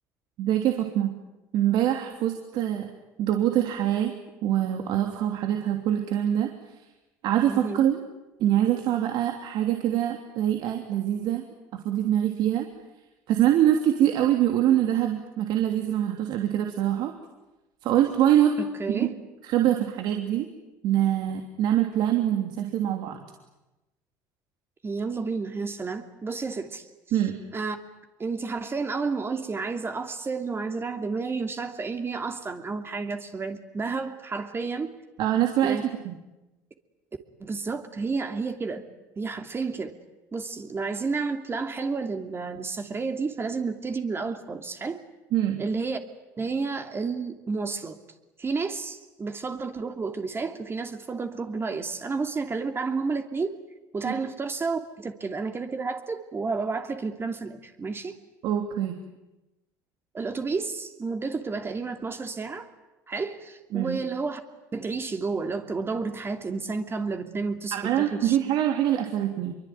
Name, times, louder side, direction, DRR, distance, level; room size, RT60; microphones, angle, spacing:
voice 1, 0.4-1.1 1.5-2.9 3.2-4.1 4.4-6.5 7.2-8.0 8.4-11.4 11.8-12.7 13.3-17.1 17.8-18.5 18.9-19.1 19.4-20.5 20.8-23.2 27.1-27.4 35.2-35.8 36.0-36.2 45.3-45.6 54.0-54.1 58.4-59.0 63.7-64.0 67.7-69.6, right 11 dB, 65° right, 4 dB, 3.0 m, -24 dB
voice 2, 7.5-7.9 18.6-19.1 24.8-26.8 27.5-27.8 28.2-34.9 35.6-35.8 37.4-38.8 39.2-39.9 40.3-45.0 45.6-46.0 46.4-48.0 48.4-53.6 53.9-58.2 60.1-62.7 63.1-64.4 64.7-68.4, right 4 dB, 30° right, 5 dB, 2.8 m, -31 dB
26.0 x 23.5 x 9.3 m, 1.0 s
supercardioid pair, 80°, 8 cm